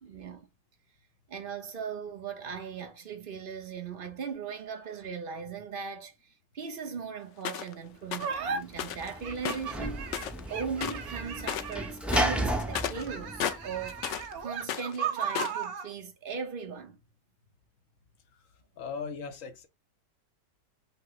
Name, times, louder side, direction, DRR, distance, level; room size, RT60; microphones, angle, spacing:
voice 1, 0.0-0.5 1.3-6.1 6.5-10.2 10.5-14.0 14.4-17.0, right 6 dB, 40° right, 0.9 m, -38 dB
sound 1, 7.4-7.7 8.1-8.3 8.8-9.1 9.4-10.5 10.8-11.1 11.4-11.8 12.1-14.3 14.6-15.6, left 10 dB, 85° left, 0.6 m, -34 dB
sound 2, 8.2-8.6 9.2-12.0 12.7-15.9, right 6 dB, 60° right, 1.1 m, -36 dB
Sliding door / Slam, 8.4-14.2, right 1 dB, ahead, 0.5 m, -34 dB
voice 2, 18.8-19.7, left 5 dB, 55° left, 1.0 m, -38 dB
5.7 x 2.2 x 3.9 m
omnidirectional pair, 1.9 m